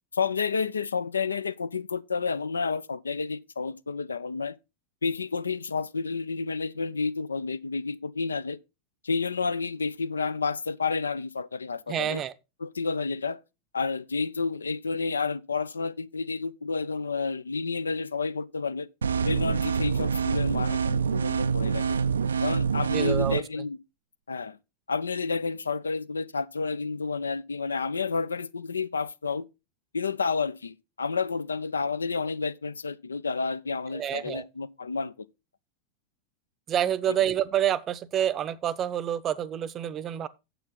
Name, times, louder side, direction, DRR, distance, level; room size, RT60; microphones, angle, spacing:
voice 1, 0.1-4.6 5.0-8.6 9.0-12.2 12.6-13.4 13.7-18.9 19.2-21.9 22.4-23.8 24.3-24.6 24.9-29.4 29.9-35.3 37.1-37.2, left 4 dB, 75° left, 0.5 m, -30 dB
voice 2, 11.9-12.3 22.9-23.4 33.9-34.5 36.7-40.3, right 10 dB, 30° right, 0.7 m, -28 dB
sound 1, 19.0-23.4, right 6 dB, 70° right, 0.4 m, -26 dB
9.0 x 7.7 x 3.9 m
figure-of-eight pair, 90°, 0 cm